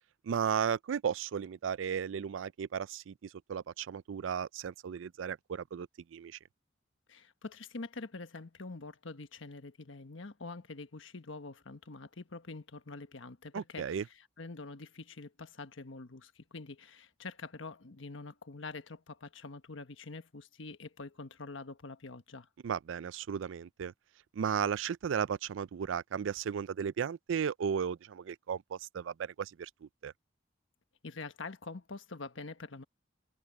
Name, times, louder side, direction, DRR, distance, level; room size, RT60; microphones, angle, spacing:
voice 1, 0.2-6.4 13.5-14.0 22.6-23.9 24.3-30.1, right 7 dB, 85° right, 0.4 m, -35 dB
voice 2, 7.1-14.0 14.4-22.5 31.0-32.8, left 3 dB, 90° left, 1.3 m, -45 dB
head